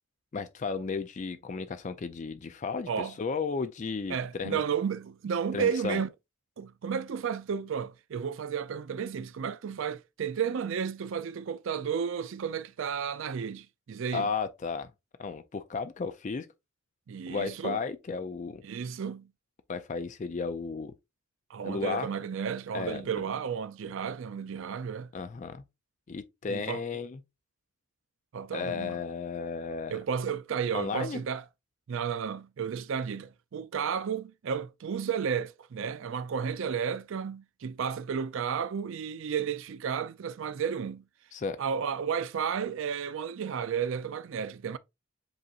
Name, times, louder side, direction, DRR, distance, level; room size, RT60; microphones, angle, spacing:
voice 1, 0.3-4.6 5.5-6.0 14.1-14.9 15.2-16.5 17.3-18.6 19.7-20.9 21.6-22.1 22.7-23.0 25.1-25.6 26.1-27.2 28.5-30.0 30.7-31.2 41.3-41.6, left 5 dB, 35° left, 0.3 m, -34 dB
voice 2, 4.1-6.1 6.6-14.3 17.1-17.8 18.6-19.3 21.5-25.1 26.5-26.8 28.3-29.0 29.9-31.4 31.9-41.0 41.6-44.8, right 7 dB, 60° right, 0.4 m, -32 dB
7.6 x 2.8 x 2.4 m
head